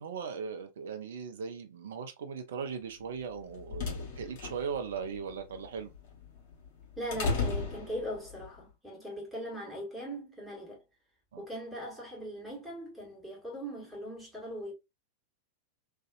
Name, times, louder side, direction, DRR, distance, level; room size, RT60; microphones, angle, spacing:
voice 1, 0.0-5.9 11.3-11.4, right 6 dB, 60° right, 0.5 m, -38 dB
sound 1, 3.2-8.5, left 4 dB, 50° left, 1.1 m, -36 dB
voice 2, 6.9-10.8 11.4-14.7, equal, 5° right, 1.4 m, -40 dB
2.6 x 2.4 x 2.3 m
figure-of-eight pair, 90°, 0 cm